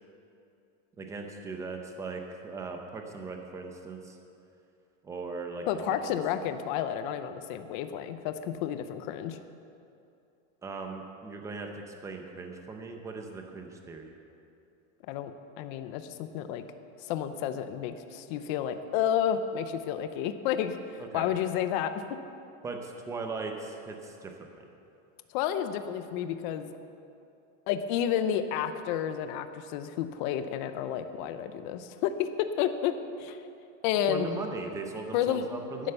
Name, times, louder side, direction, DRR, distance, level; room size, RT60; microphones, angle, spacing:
voice 1, 1.0-4.2 5.0-6.0 10.6-14.1 21.0-21.3 22.6-24.5 34.1-35.9, right 3 dB, 10° right, 3 dB, 0.6 m, -39 dB
voice 2, 5.7-9.4 15.1-15.3 15.6-16.6 17.0-21.9 25.3-26.7 27.7-33.4 33.8-34.3 35.1-35.5 35.8-35.9, left 9 dB, 40° left, 10 dB, 0.7 m, -31 dB
11.5 x 10.5 x 6.7 m, 2.7 s
supercardioid pair, 170°, 39 cm